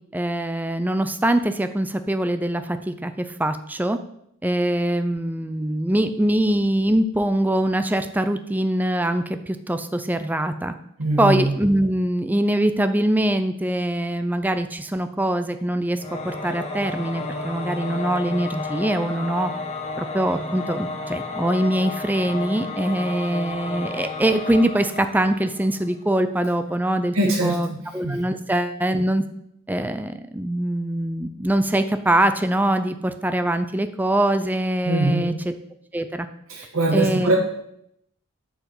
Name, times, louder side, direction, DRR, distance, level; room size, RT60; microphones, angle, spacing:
voice 1, 0.1-4.0 4.4-10.7 11.2-19.5 20.0-27.2 27.4-27.7 27.9-29.2 29.7-35.3 35.9-36.3 36.9-37.3, right 1 dB, 10° right, 9 dB, 0.5 m, -23 dB
voice 2, 11.0-11.5 27.1-27.8 28.0-28.2 34.8-35.4 36.5-37.4, right 1 dB, 85° right, -1 dB, 1.6 m, -22 dB
Singing / Musical instrument, 16.0-26.0, left 3 dB, 30° left, 1.3 m, -32 dB
8.9 x 4.9 x 7.1 m, 0.74 s
head